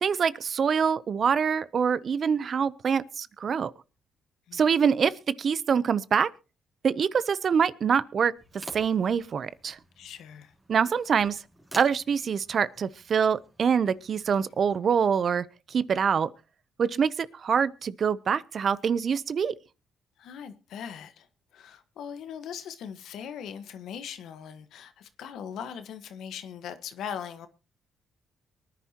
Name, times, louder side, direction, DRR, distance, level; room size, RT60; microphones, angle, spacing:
voice 1, 0.0-3.7 4.5-5.1 5.4-6.3 6.8-8.3 8.7-9.8 10.7-11.4 11.8-15.4 15.7-16.3 16.8-19.5, right 6 dB, 50° right, 0.7 m, -25 dB
sound 1, 8.4-14.8, right 1 dB, 15° right, 3.6 m, -50 dB
voice 2, 10.0-10.5 20.2-21.3 21.5-27.5, left 8 dB, 75° left, 1.4 m, -40 dB
23.5 x 10.0 x 2.9 m
cardioid pair, 90°, 0 cm